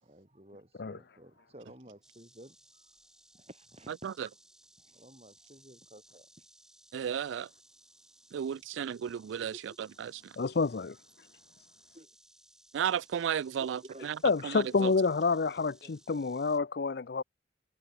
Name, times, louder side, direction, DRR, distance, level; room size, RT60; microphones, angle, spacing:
voice 1, 0.0-3.1 3.3-3.9 4.2-4.3 4.8-6.5 9.5-9.8 11.3-11.7 11.9-12.1 13.8-14.4 14.8-15.2 15.6-16.3, right 1 dB, 35° right, 3.7 m, -54 dB
Insect, 2.0-16.6, right 1 dB, 5° right, 4.3 m, -62 dB
voice 2, 6.9-7.5 8.3-10.3 12.7-14.2 14.4-14.9, right 8 dB, 80° right, 0.3 m, -34 dB
voice 3, 10.4-11.0 14.2-17.2, left 4 dB, 55° left, 0.5 m, -28 dB
head